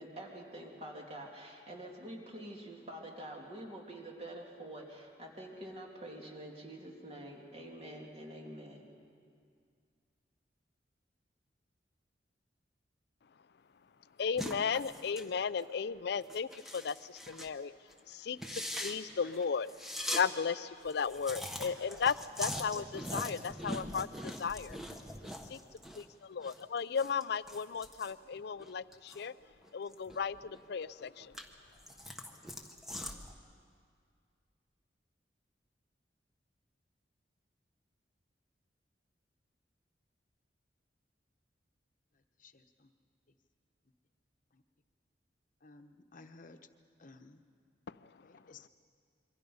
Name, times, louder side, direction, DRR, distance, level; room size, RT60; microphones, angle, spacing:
voice 1, 0.0-8.9, right 1 dB, 35° right, 0 dB, 3.0 m, -47 dB
voice 2, 14.2-17.7 18.1-24.8 25.5-25.6 26.0-29.3 29.7-31.4 47.9-48.1, left 6 dB, 65° left, 17 dB, 0.5 m, -35 dB
sound 1, 14.4-15.3 15.6-15.8 16.2-17.6 17.9-18.0 18.3-20.2 20.6-20.7 20.9-26.0 26.3-29.3 29.6-30.6 31.0-33.3, left 1 dB, ahead, 1.3 m, -42 dB
voice 3, 42.4-42.9 44.5-44.6 45.6-46.6 47.0-47.4 48.2-48.7, left 3 dB, 50° left, 7 dB, 1.1 m, -56 dB
27.0 x 23.0 x 5.5 m, 2.2 s
head